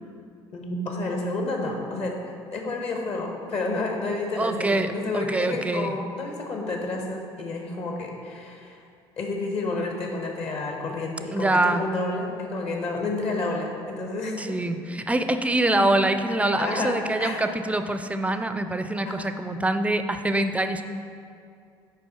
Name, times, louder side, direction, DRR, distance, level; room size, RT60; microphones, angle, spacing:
voice 1, 0.5-2.2 2.5-8.8 9.2-14.6 16.6-17.4 19.1-19.3, left 2 dB, 50° left, 1 dB, 1.4 m, -30 dB
voice 2, 4.4-5.9 11.3-11.9 14.4-20.8, right 2 dB, 10° right, 9 dB, 0.4 m, -25 dB
7.4 x 5.4 x 4.3 m, 2.4 s
figure-of-eight pair, 55°, 14 cm